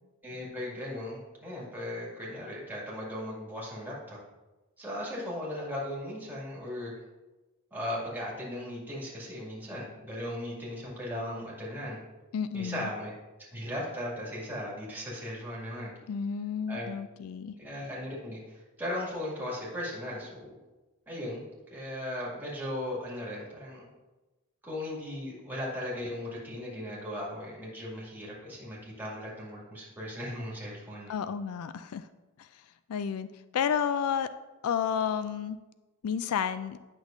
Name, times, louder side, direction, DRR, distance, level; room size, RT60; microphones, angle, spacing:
voice 1, 0.2-4.2 4.8-6.9 7.7-12.0 12.5-13.1 13.5-16.0 16.7-16.9 17.6-20.5 21.1-21.4 21.7-23.9 24.6-31.1, left 1 dB, 10° right, -6 dB, 2.1 m, -37 dB
voice 2, 12.3-12.9 16.1-17.5 31.1-32.1 32.4-32.5 32.9-33.3 33.5-34.3 34.6-35.6 36.0-36.8, left 7 dB, 75° left, 13 dB, 0.3 m, -31 dB
9.5 x 6.1 x 2.6 m, 1.1 s
head